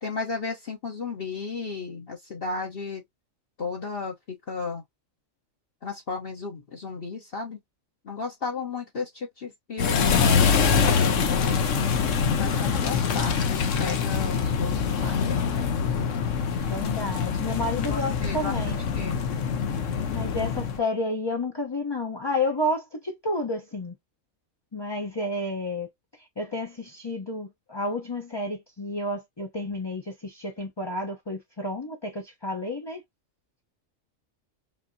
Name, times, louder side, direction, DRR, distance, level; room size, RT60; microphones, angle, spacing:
voice 1, 0.0-3.0 3.6-4.8 5.8-7.6 8.0-11.6 12.3-15.7 17.8-18.6 18.9-19.2, left 4 dB, 45° left, 1.1 m, -34 dB
sound 1, 9.8-20.8, left 6 dB, 65° left, 1.1 m, -24 dB
voice 2, 16.7-18.8 20.1-23.9 24.7-25.9 26.4-33.0, left 1 dB, 25° left, 0.7 m, -30 dB
5.3 x 2.7 x 2.6 m
omnidirectional pair, 1.4 m